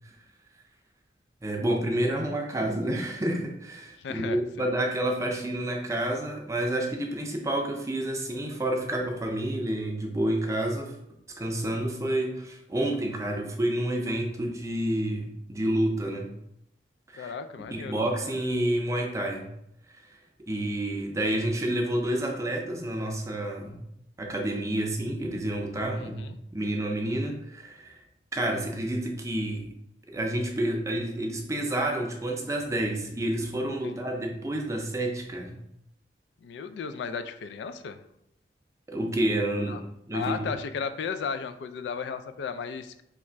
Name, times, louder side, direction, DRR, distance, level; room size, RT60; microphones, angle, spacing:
voice 1, 1.4-11.0 11.3-16.3 17.1-17.3 17.7-19.5 20.5-23.8 24.2-27.9 28.3-29.7 30.1-35.6 38.9-39.8 40.1-40.6, right 1 dB, 15° right, 1 dB, 0.5 m, -29 dB
voice 2, 4.0-4.7 17.2-18.0 25.9-26.4 33.8-34.0 36.4-38.0 39.6-39.8 40.1-43.0, left 6 dB, 80° left, 9 dB, 0.3 m, -35 dB
3.1 x 2.4 x 4.4 m, 0.78 s
head